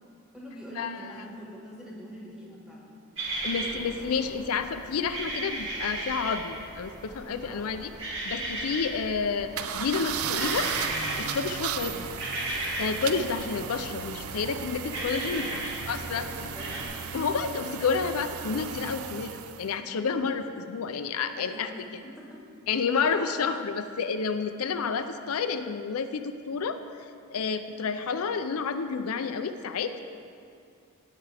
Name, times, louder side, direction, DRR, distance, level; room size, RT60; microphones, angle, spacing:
voice 1, 0.3-4.1 4.5-4.7 7.4-7.7 15.2-15.8 16.1-17.0 21.4-22.6 23.1-23.4, equal, 5° right, -5 dB, 1.5 m, -45 dB
sound 1, 3.2-16.9, right 1 dB, 55° right, 2.6 m, -36 dB
voice 2, 3.4-7.9 8.3-10.7 11.2-12.1 12.8-15.6 15.9-16.2 17.1-21.7 22.7-30.0, left 5 dB, 85° left, 9 dB, 0.5 m, -30 dB
sound 2, 9.6-19.7, right 7 dB, 85° right, 0.5 m, -35 dB
17.0 x 5.9 x 3.4 m, 2.4 s
head